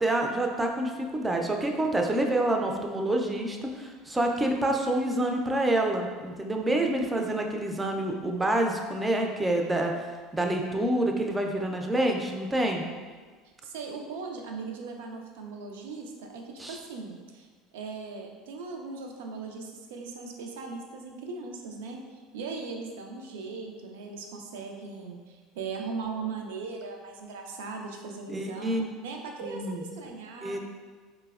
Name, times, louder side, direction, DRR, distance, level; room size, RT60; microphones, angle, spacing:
voice 1, 0.0-10.1 10.3-12.8 16.6-16.8 28.3-28.8 29.4-29.8 30.4-30.6, right 1 dB, 15° right, 2 dB, 0.4 m, -27 dB
voice 2, 13.6-17.5 17.7-30.6, right 4 dB, 85° right, 2 dB, 0.4 m, -39 dB
3.9 x 2.0 x 2.3 m, 1.5 s
supercardioid pair, 100°, 0 cm